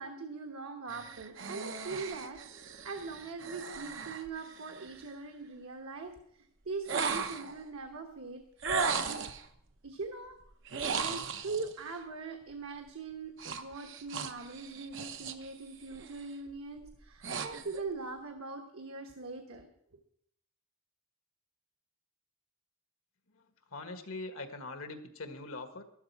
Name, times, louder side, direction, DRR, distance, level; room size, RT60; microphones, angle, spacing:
voice 1, 0.0-8.4 8.8-9.2 9.8-10.4 10.8-19.7, right 4 dB, 85° right, 4 dB, 1.2 m, -42 dB
sound 1, 0.9-5.1 6.9-7.6 8.6-9.5 10.7-11.7 13.4-15.5 15.8-16.2 16.8-17.8, right 5 dB, 60° right, 0.9 m, -37 dB
voice 2, 23.3-25.8, left 2 dB, 80° left, 7 dB, 1.6 m, -43 dB
12.5 x 12.0 x 4.7 m, 0.72 s
head